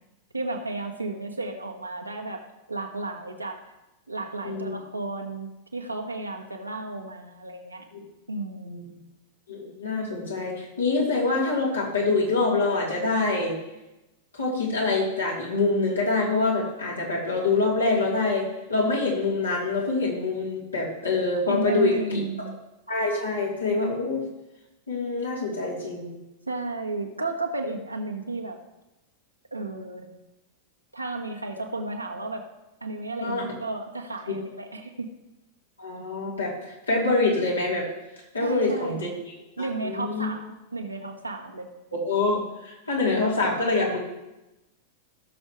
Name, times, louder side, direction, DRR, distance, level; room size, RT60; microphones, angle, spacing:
voice 1, 0.3-2.4 2.7-3.6 4.1-7.9 8.3-8.9 21.5-22.5 26.5-28.6 29.5-30.1 30.9-32.5 32.8-35.1 38.4-39.1 39.6-41.7, right 2 dB, 90° right, 1 dB, 1.3 m, -33 dB
voice 2, 4.4-4.8 7.9-8.0 8.6-8.8 9.5-13.6 14.3-22.2 22.9-24.2 24.9-26.1 33.2-33.5 35.8-37.9 38.3-40.3 41.9-44.0, left 3 dB, 80° left, -4 dB, 3.2 m, -25 dB
17.5 x 6.5 x 3.1 m, 0.98 s
figure-of-eight pair, 95°, 0 cm